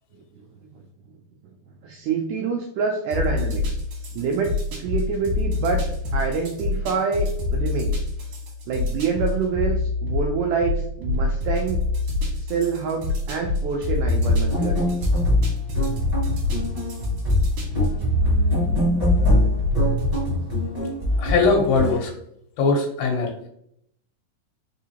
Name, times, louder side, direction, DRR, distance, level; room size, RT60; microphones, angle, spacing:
voice 1, 1.8-3.8 4.1-4.5 4.8-5.8 6.1-8.0 8.7-11.8 12.4-15.0, right 5 dB, 85° right, 2 dB, 1.8 m, -26 dB
sound 1, 3.1-20.3, left 3 dB, 55° right, 2.0 m, -26 dB
sound 2, 14.1-21.9, left 1 dB, 35° right, 0.5 m, -23 dB
voice 2, 21.2-22.1 22.6-23.3, left 4 dB, 85° left, 0 dB, 2.7 m, -20 dB
4.9 x 3.7 x 2.8 m, 0.71 s
omnidirectional pair, 4.1 m